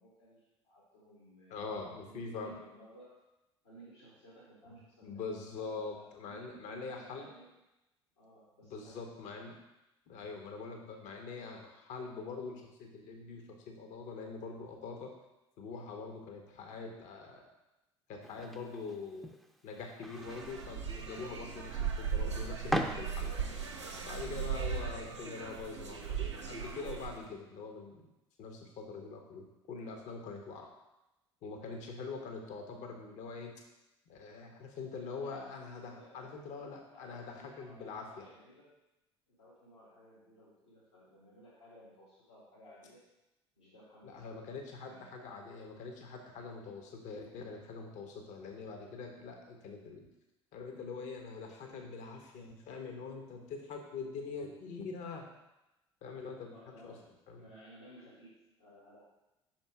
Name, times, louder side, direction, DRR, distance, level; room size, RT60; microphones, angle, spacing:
voice 1, 0.0-3.2 3.6-7.5 8.2-9.0 11.2-11.4 35.0-35.5 35.8-36.3 36.6-36.7 36.9-38.7 39.3-43.0 43.6-44.4 44.8-45.1 46.6-46.7 56.5-57.1 57.4-59.0, equal, 85° left, -8 dB, 1.8 m, -57 dB
voice 2, 1.5-2.5 4.7-7.3 8.6-9.6 10.1-15.1 15.6-17.5 18.1-19.3 19.6-23.3 24.0-28.1 28.4-30.7 31.4-33.6 34.1-38.3 44.0-50.1 50.5-55.2 56.0-56.5 56.8-57.0 57.3-57.5, left 4 dB, 55° left, 3 dB, 0.9 m, -44 dB
sound 1, 18.2-23.6, equal, ahead, 0.6 m, -41 dB
sound 2, 20.1-27.3, right 7 dB, 90° right, 0.6 m, -38 dB
5.4 x 4.4 x 4.6 m, 0.96 s
figure-of-eight pair, 60°, 14 cm